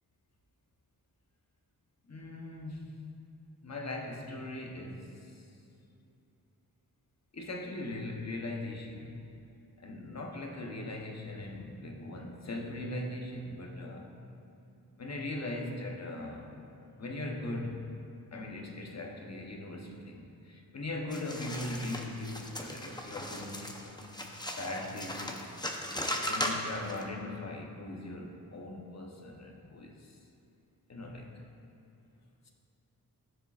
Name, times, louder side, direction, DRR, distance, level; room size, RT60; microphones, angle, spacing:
voice 1, 2.1-2.9 3.6-5.4 7.3-9.2 9.8-14.1 15.0-16.5 17.0-18.0 18.3-24.2 24.6-25.5 26.2-30.2 30.9-31.4, left 2 dB, 45° left, 0 dB, 1.0 m, -40 dB
sound 1, 21.1-27.0, left 1 dB, 10° left, 0.7 m, -37 dB
13.5 x 6.7 x 2.4 m, 2.7 s
wide cardioid pair, 75°, 37 cm